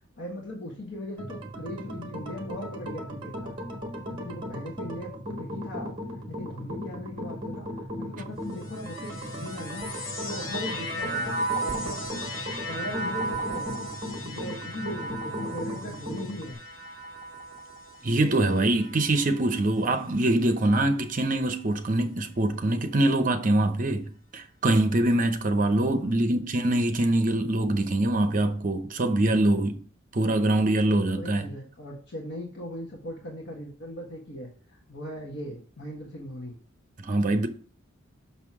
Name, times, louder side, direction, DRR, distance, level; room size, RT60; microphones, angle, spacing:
voice 1, 0.2-3.6 4.1-9.9 10.2-11.4 11.8-13.9 14.2-16.6 25.9-26.3 31.2-36.6, left 1 dB, 60° left, 1.5 m, -39 dB
sound 1, 1.2-16.5, equal, 25° right, 1.3 m, -37 dB
sound 2, 8.5-20.0 20.7-21.5, right 1 dB, 90° left, 2.2 m, -36 dB
voice 2, 18.0-29.8 30.1-31.5 37.0-37.5, right 1 dB, 40° right, 0.8 m, -24 dB
6.1 x 5.8 x 4.8 m
head